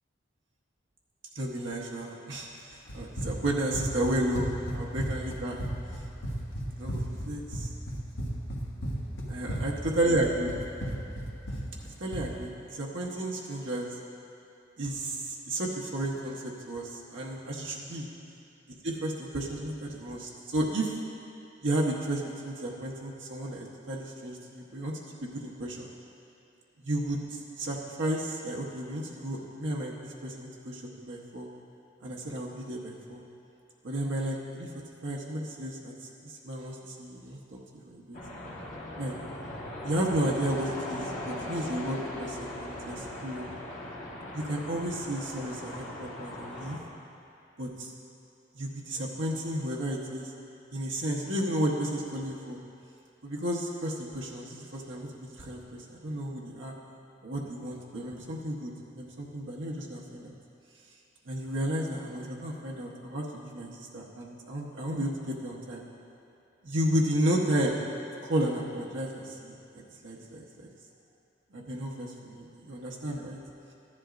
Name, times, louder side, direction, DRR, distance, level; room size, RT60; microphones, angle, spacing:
voice 1, 1.3-2.5 2.9-5.6 6.8-7.7 9.3-10.5 11.8-14.0 14.8-18.1 18.8-21.0 21.6-25.9 26.8-31.5 32.0-33.2 33.8-34.7 35.0-38.2 39.0-39.1 39.8-43.5 44.3-46.8 47.6-47.9 48.5-50.3 50.7-52.6 53.2-56.7 57.2-60.4 61.3-65.8 66.6-67.8 68.2-70.7 71.5-73.4, right 1 dB, 80° right, -3 dB, 1.0 m, -33 dB
Run, 2.9-12.3, right 1 dB, 75° left, 1.4 m, -34 dB
sound 1, 38.1-46.8, left 1 dB, 35° left, 1.4 m, -39 dB
13.5 x 11.0 x 2.5 m, 2.6 s
head